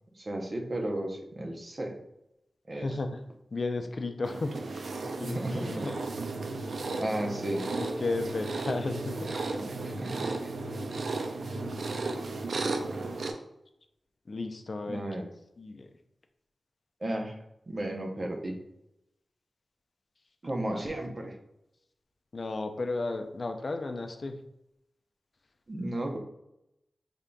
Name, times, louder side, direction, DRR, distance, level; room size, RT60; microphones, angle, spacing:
voice 1, 0.2-1.9 2.7-2.9 5.2-5.9 7.0-7.7 9.6-10.5 14.9-15.2 17.0-17.4 17.7-18.6 20.4-21.3 25.7-26.2, right 1 dB, 50° right, 2 dB, 0.6 m, -34 dB
voice 2, 2.7-3.2 3.5-4.6 5.0-6.0 7.8-9.3 10.9-11.0 14.3-15.3 15.6-15.9 20.7-20.9 22.3-24.4, left 3 dB, 60° left, 6 dB, 0.4 m, -34 dB
sound 1, 4.2-13.3, right 3 dB, 85° right, 0.3 m, -34 dB
3.8 x 3.5 x 2.2 m, 0.83 s
cardioid pair, 55°, 0 cm